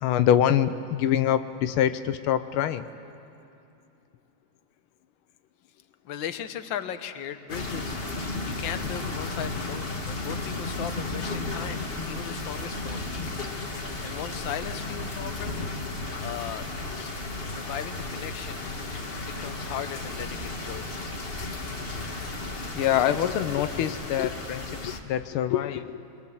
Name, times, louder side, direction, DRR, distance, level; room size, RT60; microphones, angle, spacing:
voice 1, 0.0-2.8 22.8-26.0, left 10 dB, 90° left, 11 dB, 1.6 m, -25 dB
voice 2, 6.0-15.6 16.2-16.7 16.9-17.1 17.4-18.7 19.2-20.9, left 9 dB, 70° left, 10 dB, 1.7 m, -38 dB
sound 1, 7.5-25.0, left 2 dB, 30° left, 1.5 m, -34 dB
25.5 x 22.5 x 7.2 m, 2.7 s
omnidirectional pair, 2.3 m